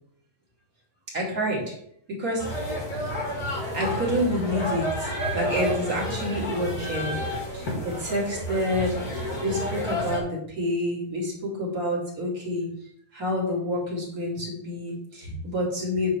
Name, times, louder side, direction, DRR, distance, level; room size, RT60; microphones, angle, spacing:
voice 1, 1.1-1.7 2.1-2.7 3.7-7.2 7.5-9.0 9.4-12.7 13.1-16.1, left 1 dB, 30° right, -4 dB, 2.4 m, -28 dB
sound 1, 2.4-10.2, equal, 35° left, 2.1 m, -30 dB
8.4 x 4.0 x 5.9 m, 0.69 s
omnidirectional pair, 3.8 m